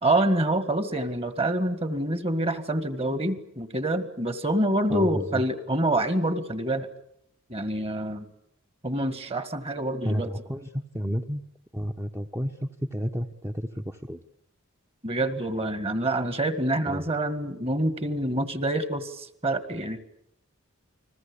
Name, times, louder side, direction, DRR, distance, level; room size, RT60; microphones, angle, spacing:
voice 1, 0.0-6.9 7.5-8.3 8.8-10.3 15.0-20.0, right 1 dB, 30° right, 12 dB, 1.9 m, -26 dB
voice 2, 4.9-5.4 10.0-11.4 11.7-14.2 16.9-17.0, equal, 10° right, 4 dB, 1.0 m, -31 dB
29.5 x 21.5 x 8.5 m, 0.72 s
head